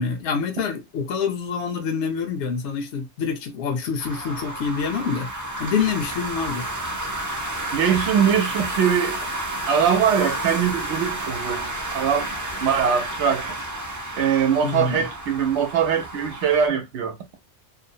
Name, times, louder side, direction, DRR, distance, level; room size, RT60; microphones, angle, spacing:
voice 1, 0.0-5.3 5.6-6.7 14.6-15.1, left 6 dB, 85° left, 0.9 m, -26 dB
sound 1, 4.0-16.7, right 1 dB, 25° right, 0.4 m, -31 dB
voice 2, 7.7-9.2 9.7-12.3 12.6-13.6 14.2-17.2, right 7 dB, 80° right, 1.0 m, -22 dB
2.7 x 2.0 x 2.6 m
omnidirectional pair, 1.2 m